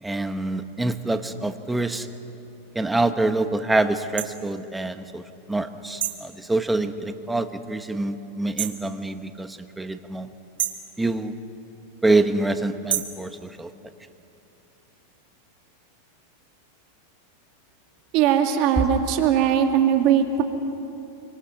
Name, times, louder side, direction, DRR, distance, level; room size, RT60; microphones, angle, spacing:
voice 1, 0.0-2.1 2.7-5.2 5.5-10.3 11.0-11.3 12.0-13.7, right 2 dB, 5° right, 8 dB, 1.2 m, -25 dB
sound 1, 4.2-4.3 6.0-6.3 8.6-8.9 10.6-10.9 12.9-13.2, right 11 dB, 80° right, 1.7 m, -28 dB
voice 2, 18.1-20.4, right 9 dB, 50° right, 4 dB, 2.5 m, -20 dB
26.5 x 24.5 x 5.9 m, 2.8 s
supercardioid pair, 130°, 0 cm